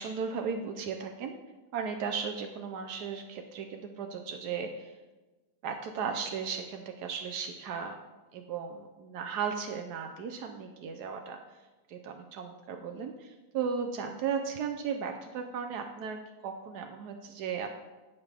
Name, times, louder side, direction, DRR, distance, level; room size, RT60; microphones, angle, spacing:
voice 1, 0.0-1.3 1.7-4.9 5.6-8.0 8.3-11.4 11.9-17.7, right 6 dB, 90° right, 4 dB, 1.3 m, -36 dB
15.5 x 5.6 x 3.4 m, 1.2 s
omnidirectional pair, 1.7 m